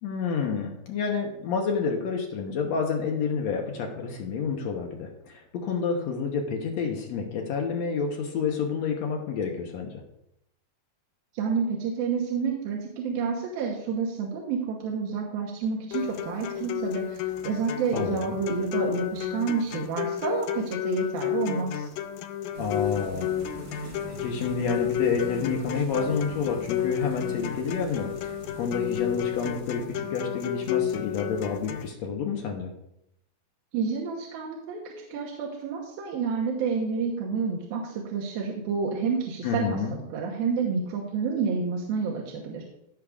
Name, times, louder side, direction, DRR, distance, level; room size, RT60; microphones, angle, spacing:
voice 1, 0.0-9.9 17.9-18.4 22.6-23.3 23.7-32.7 39.4-39.9, left 5 dB, 70° left, 1 dB, 1.6 m, -29 dB
voice 2, 11.3-21.9 33.7-42.6, right 5 dB, 75° right, -2 dB, 2.8 m, -29 dB
sound 1, 15.9-31.9, left 11 dB, 90° left, 1.8 m, -31 dB
sound 2, 22.5-30.0, right 3 dB, 60° right, 1.3 m, -44 dB
16.0 x 6.5 x 2.4 m, 0.81 s
omnidirectional pair, 4.3 m